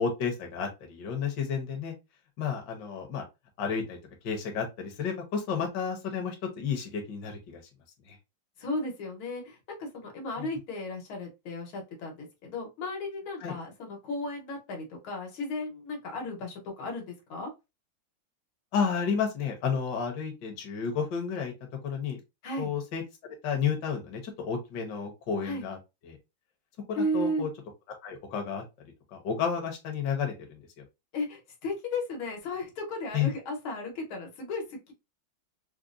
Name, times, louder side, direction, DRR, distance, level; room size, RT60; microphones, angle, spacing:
voice 1, 0.0-1.9 2.4-3.3 3.6-4.0 4.2-7.6 8.1-8.2 10.4-10.5 13.4-13.5 18.7-21.5 21.8-22.2 22.6-25.8 26.0-26.2 27.1-27.5 28.0-28.6 29.1-30.6 33.1-33.3, left 6 dB, 65° left, 1.4 m, -31 dB
voice 2, 8.6-17.5 22.4-22.7 25.4-25.7 27.0-27.5 31.1-34.9, left 1 dB, 85° left, 1.9 m, -35 dB
4.7 x 2.1 x 2.5 m
omnidirectional pair, 2.2 m